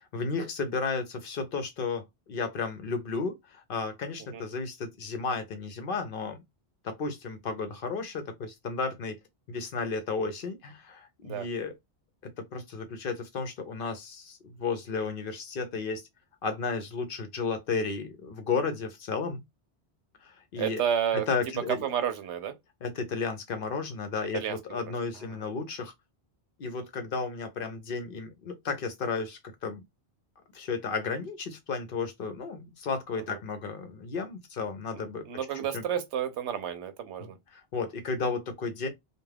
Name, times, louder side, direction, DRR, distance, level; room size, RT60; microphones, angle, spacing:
voice 1, 0.1-6.4 6.8-9.2 9.5-11.7 12.2-16.0 16.4-19.4 20.2-20.8 21.3-21.9 22.8-25.9 26.6-29.8 30.5-35.3 35.7-35.8 37.2-38.9, left 4 dB, 60° left, 0.7 m, -33 dB
voice 2, 20.6-21.3 21.8-22.6 24.3-24.9 33.3-33.4 35.3-37.4, right 9 dB, 80° right, 0.9 m, -31 dB
2.3 x 2.3 x 3.2 m
omnidirectional pair, 1.1 m